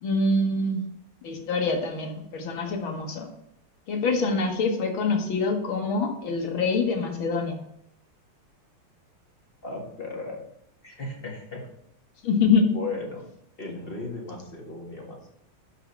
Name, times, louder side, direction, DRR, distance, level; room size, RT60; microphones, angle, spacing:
voice 1, 0.0-0.8 1.2-3.3 3.9-7.6 12.2-12.7, left 3 dB, 70° left, 3 dB, 2.0 m, -25 dB
voice 2, 9.6-10.4 10.8-11.7 12.7-13.2 13.6-15.2, left 3 dB, 30° left, -2 dB, 1.9 m, -36 dB
11.5 x 4.0 x 4.5 m, 0.76 s
omnidirectional pair, 2.3 m